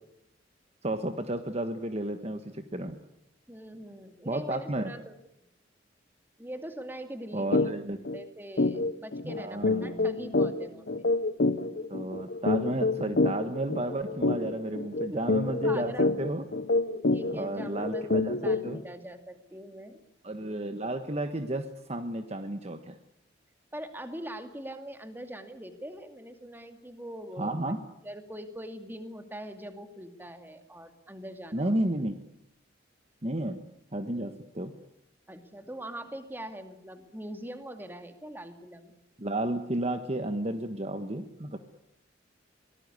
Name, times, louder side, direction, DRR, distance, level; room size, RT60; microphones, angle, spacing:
voice 1, 0.8-3.0 4.2-4.9 7.3-8.0 9.2-10.1 11.9-16.5 17.3-18.8 20.2-23.0 27.4-27.8 31.5-32.2 33.2-33.6 33.9-34.7 39.2-41.6, right 1 dB, 35° right, 8 dB, 1.4 m, -32 dB
voice 2, 3.5-5.1 6.4-7.8 8.1-11.1 15.3-16.1 17.1-18.1 18.4-20.0 23.7-27.7 28.0-31.7 35.3-38.9, right 1 dB, 10° right, 7 dB, 2.4 m, -42 dB
sound 1, 7.5-7.7 8.0-8.2 8.6-18.8, left 2 dB, 60° left, 1.1 m, -27 dB
24.0 x 18.5 x 9.8 m, 0.80 s
head